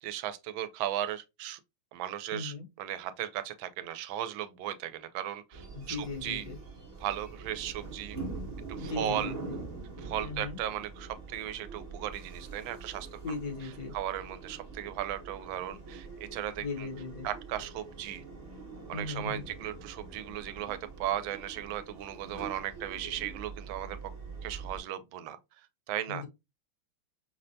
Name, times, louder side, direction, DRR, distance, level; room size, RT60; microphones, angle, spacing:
voice 1, 0.0-1.6 1.9-6.4 7.0-8.2 8.8-9.3 10.0-13.4 13.9-16.9 17.2-18.2 18.9-24.0 24.4-25.4 25.9-26.2, right 11 dB, 85° right, 1.3 m, -36 dB
voice 2, 2.3-2.6 5.7-6.6 8.8-9.6 10.2-10.6 13.2-13.9 16.6-17.3 18.9-19.4 26.1-26.3, left 4 dB, 60° left, 1.3 m, -38 dB
sound 1, 5.5-24.8, right 4 dB, 30° right, 0.8 m, -44 dB
5.4 x 2.1 x 2.6 m
omnidirectional pair, 2.1 m